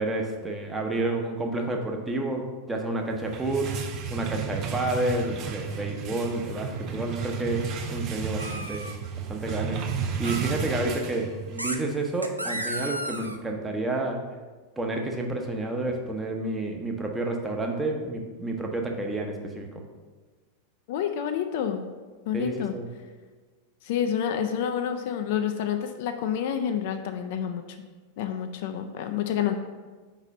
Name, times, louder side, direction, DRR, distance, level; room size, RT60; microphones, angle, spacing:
voice 1, 0.0-3.8 4.1-8.9 9.3-14.2 14.8-19.7 22.3-22.9, right 2 dB, 10° right, 1 dB, 0.8 m, -30 dB
sound 1, 3.1-11.7, right 6 dB, 35° right, 0.5 m, -33 dB
sound 2, 8.4-9.0 10.2-10.5 11.6-11.8 12.2-13.4, right 1 dB, 85° right, 0.4 m, -33 dB
voice 2, 20.9-21.9 22.3-22.7 23.8-27.6 28.2-29.5, left 8 dB, 50° left, 6 dB, 0.4 m, -28 dB
4.9 x 4.1 x 5.3 m, 1.4 s
figure-of-eight pair, 90°, 0 cm